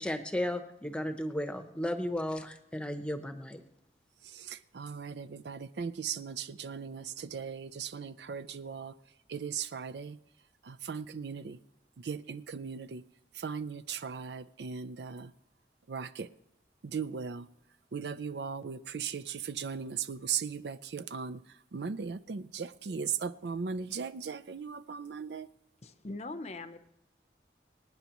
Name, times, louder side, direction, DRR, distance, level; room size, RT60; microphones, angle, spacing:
voice 1, 0.0-3.6, left 1 dB, 5° left, 0.8 m, -34 dB
voice 2, 4.3-8.9 9.3-10.2 10.6-11.6 12.0-13.0 13.4-15.3 15.9-16.3 16.8-17.5 17.9-21.4 21.7-25.5, right 6 dB, 75° right, 0.5 m, -38 dB
voice 3, 25.8-26.8, left 2 dB, 40° left, 0.7 m, -41 dB
26.0 x 9.3 x 3.0 m
head